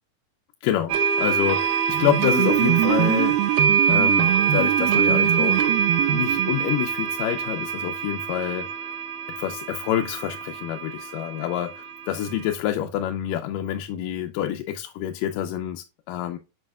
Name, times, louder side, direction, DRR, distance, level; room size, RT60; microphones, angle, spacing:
voice 1, 0.6-3.6 3.9-5.7 6.1-9.0 9.4-16.4, left 11 dB, 85° left, 2.2 m, -27 dB
sound 1, 0.9-12.5, right 7 dB, 70° right, 2.4 m, -24 dB
sound 2, 1.9-6.8, right 17 dB, 85° right, 2.2 m, -24 dB
7.6 x 5.6 x 2.3 m
omnidirectional pair, 3.9 m